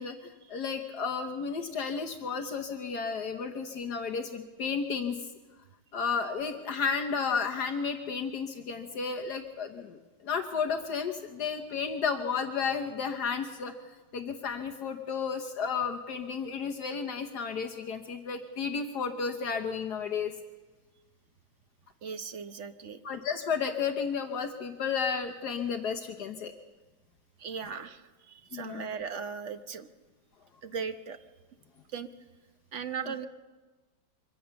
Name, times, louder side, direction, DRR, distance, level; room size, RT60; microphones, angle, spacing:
voice 1, 0.0-5.2 5.9-13.7 14.1-20.3 23.0-26.5 28.5-28.8, left 5 dB, 65° left, 4 dB, 1.6 m, -32 dB
voice 2, 22.0-23.0 27.4-29.9 30.6-31.2 31.9-32.1 32.7-33.3, right 6 dB, 50° right, 9 dB, 1.2 m, -38 dB
24.0 x 16.5 x 7.0 m, 1.3 s
omnidirectional pair, 1.9 m